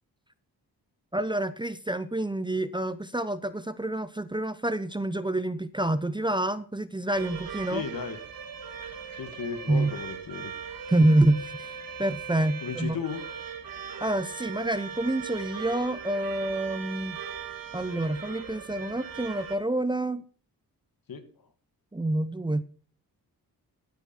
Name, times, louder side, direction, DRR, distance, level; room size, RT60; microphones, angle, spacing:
voice 1, 1.1-7.8 9.7-9.9 10.9-13.0 14.0-17.2 17.7-20.2 21.9-22.6, right 1 dB, 10° right, 15 dB, 0.7 m, -27 dB
sound 1, 7.1-19.6, right 6 dB, 65° right, 1.9 m, -39 dB
voice 2, 7.7-8.2 9.1-10.5 12.6-13.2 21.1-21.5, left 6 dB, 65° left, 10 dB, 1.8 m, -35 dB
13.0 x 9.4 x 4.4 m, 0.43 s
cardioid pair, 60°, 37 cm